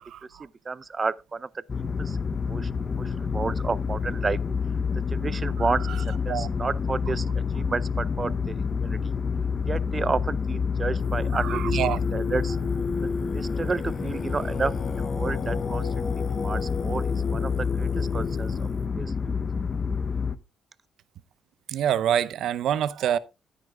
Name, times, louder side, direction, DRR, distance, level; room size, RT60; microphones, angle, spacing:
voice 1, 0.4-1.6 2.0-2.2 2.5-4.4 5.1-7.3 7.5-9.1 9.7-11.8 12.1-12.6 13.3-15.9 16.4-18.7 18.9-19.4, right 4 dB, 30° right, 0.6 m, -31 dB
sound 1, 1.7-20.4, left 5 dB, 35° left, 0.9 m, -28 dB
voice 2, 5.6-6.0 6.3-6.5 11.3-12.0 21.7-23.2, right 10 dB, 75° right, 0.7 m, -26 dB
Singing, 11.0-18.9, left 4 dB, 50° left, 1.9 m, -35 dB
13.5 x 9.6 x 2.3 m
cardioid pair, 90°, 0 cm